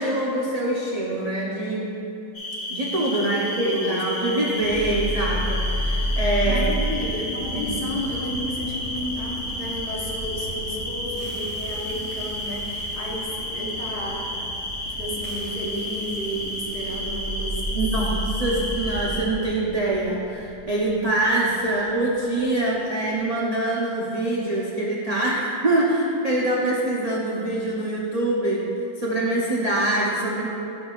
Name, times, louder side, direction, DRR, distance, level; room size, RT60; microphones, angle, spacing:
voice 1, 0.0-1.9 2.7-6.7 7.5-7.8 17.7-28.7 29.0-30.5, right 1 dB, 70° right, -6 dB, 0.3 m, -24 dB
sound 1, 2.3-19.2, left 1 dB, 50° left, 1.8 m, -32 dB
voice 2, 3.1-4.3 6.4-14.4 14.9-18.6, equal, 75° left, -4 dB, 1.7 m, -32 dB
sound 2, 4.6-22.7, right 1 dB, 50° right, 1.3 m, -32 dB
10.5 x 6.1 x 2.3 m, 2.9 s
omnidirectional pair, 1.7 m